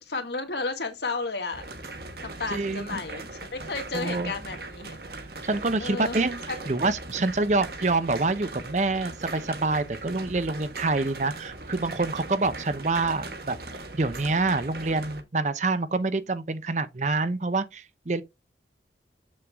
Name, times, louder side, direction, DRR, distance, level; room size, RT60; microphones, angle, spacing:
voice 1, 0.1-1.6 2.2-5.0 5.8-6.2 6.5-6.7, left 3 dB, 70° left, 1.9 m, -33 dB
sound 1, 1.5-15.2, right 2 dB, 55° right, 1.4 m, -39 dB
voice 2, 2.5-3.0 3.9-4.3 5.1-13.6 13.9-18.2, right 3 dB, 40° right, 0.7 m, -27 dB
7.7 x 6.4 x 3.5 m
head